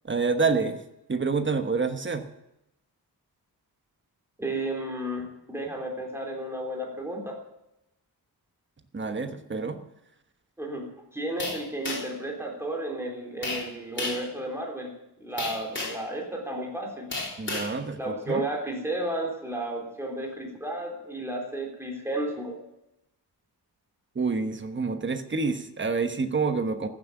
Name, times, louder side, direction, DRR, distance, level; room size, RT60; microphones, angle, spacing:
voice 1, 0.0-0.8 1.1-2.2 8.9-9.8 17.4-18.0 18.3-18.4 24.1-26.9, right 4 dB, 30° right, 8 dB, 1.2 m, -27 dB
voice 2, 4.4-7.4 10.6-10.9 11.1-14.9 15.2-17.1 18.0-22.5, right 1 dB, 5° right, -1 dB, 3.4 m, -33 dB
sound 1, 11.4-12.2 13.4-13.7 14.0-14.3 15.4-16.1 17.1-17.7, left 2 dB, 30° left, 3.6 m, -32 dB
14.5 x 7.8 x 9.1 m, 0.87 s
wide cardioid pair, 150°, 40 cm